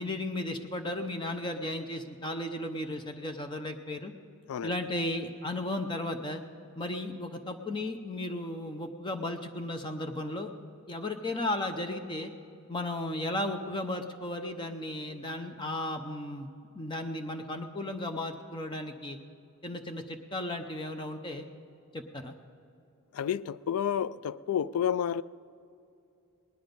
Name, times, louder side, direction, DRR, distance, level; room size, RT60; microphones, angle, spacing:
voice 1, 0.0-4.1 4.6-6.4 6.8-10.5 10.9-12.3 12.7-16.5 16.7-19.2 19.6-21.4 21.9-22.3, left 1 dB, 20° left, 0.6 m, -35 dB
voice 2, 23.1-25.2, left 9 dB, 90° left, 0.3 m, -30 dB
19.0 x 11.0 x 5.2 m
head